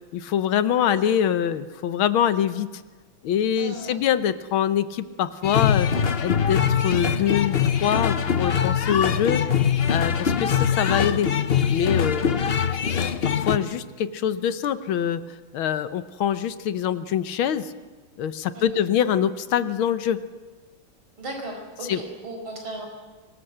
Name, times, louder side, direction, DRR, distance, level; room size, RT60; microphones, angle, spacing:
voice 1, 0.1-2.7 3.2-9.4 9.9-11.3 11.7-12.3 12.9-15.2 15.5-17.7 18.2-20.2 21.9-22.0, left 9 dB, 75° left, 13 dB, 1.7 m, -24 dB
voice 2, 3.6-4.0 18.5-18.8 21.2-22.9, right 1 dB, 75° right, 2 dB, 5.8 m, -36 dB
sound 1, 5.4-13.6, left 7 dB, 60° left, 0.6 m, -23 dB
24.5 x 19.5 x 7.8 m, 1.3 s
omnidirectional pair, 2.3 m